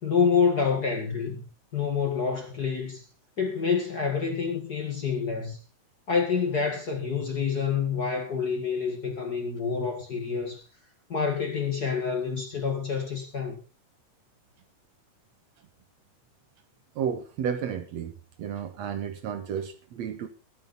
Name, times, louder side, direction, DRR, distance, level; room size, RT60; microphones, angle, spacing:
voice 1, 0.0-1.4 1.7-3.0 3.4-5.6 6.1-10.6 11.1-13.6, left 6 dB, 35° left, 1.9 m, -27 dB
voice 2, 17.0-20.3, right 8 dB, 65° right, 2.2 m, -32 dB
21.5 x 8.2 x 4.1 m
omnidirectional pair, 3.7 m